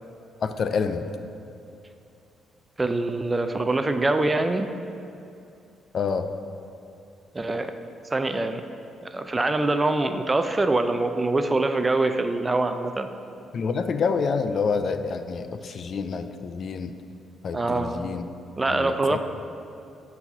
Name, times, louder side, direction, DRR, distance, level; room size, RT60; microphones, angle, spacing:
voice 1, 0.4-1.1 5.9-6.3 13.5-16.9 17.4-18.2 18.7-19.2, left 5 dB, 55° left, 9 dB, 0.4 m, -27 dB
voice 2, 2.8-4.7 7.3-7.7 8.1-8.6 9.0-13.1 17.5-18.0 18.6-19.2, right 2 dB, 20° right, 8 dB, 0.4 m, -24 dB
7.0 x 4.2 x 5.4 m, 2.6 s
cardioid pair, 90°, 0 cm